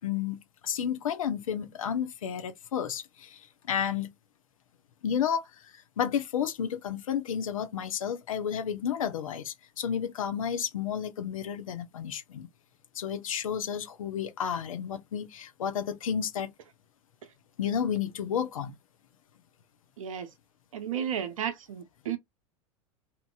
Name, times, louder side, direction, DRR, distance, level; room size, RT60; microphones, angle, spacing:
voice 1, 0.0-3.4 3.7-4.1 5.0-5.7 6.0-12.5 12.9-16.5 17.6-18.7, left 8 dB, 75° left, 0.6 m, -31 dB
voice 2, 20.0-20.3 20.7-22.2, right 9 dB, 75° right, 0.7 m, -33 dB
2.9 x 2.6 x 2.3 m
figure-of-eight pair, 85°, 17 cm